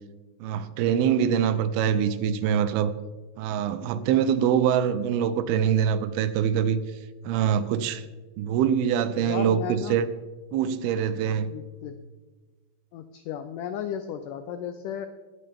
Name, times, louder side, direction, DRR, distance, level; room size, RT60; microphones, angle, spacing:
voice 1, 0.4-2.9 3.4-6.8 7.2-8.0 8.4-10.1 10.5-11.5, right 8 dB, 85° right, 13 dB, 2.6 m, -24 dB
voice 2, 9.2-10.0 11.5-12.0 12.9-15.1, left 8 dB, 90° left, 9 dB, 1.8 m, -34 dB
19.5 x 8.6 x 3.5 m, 1.3 s
omnidirectional pair, 4.4 m